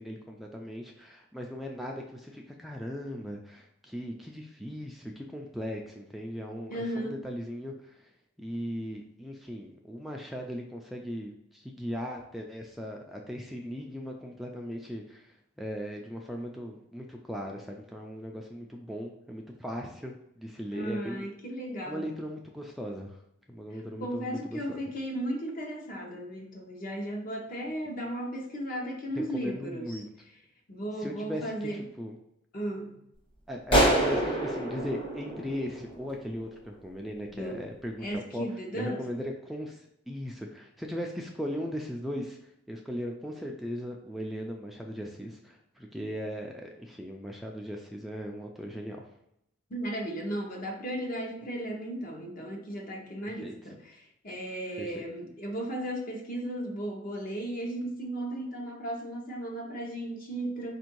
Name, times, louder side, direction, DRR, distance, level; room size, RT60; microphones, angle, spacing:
voice 1, 0.0-8.1 8.4-21.3 21.8-23.2 23.5-24.8 29.2-30.1 31.0-32.1 33.5-38.4 38.7-49.1 53.2-53.5 54.8-55.0, equal, ahead, 0 dB, 0.3 m, -38 dB
voice 2, 6.7-7.2 20.7-22.1 23.7-30.0 30.7-31.8 32.5-33.0 37.3-37.6 38.0-39.0 49.7-60.8, right 1 dB, 50° left, 1 dB, 0.9 m, -35 dB
sound 1, 33.7-36.3, right 1 dB, 25° left, 1.2 m, -26 dB
4.4 x 2.6 x 4.5 m, 0.78 s
head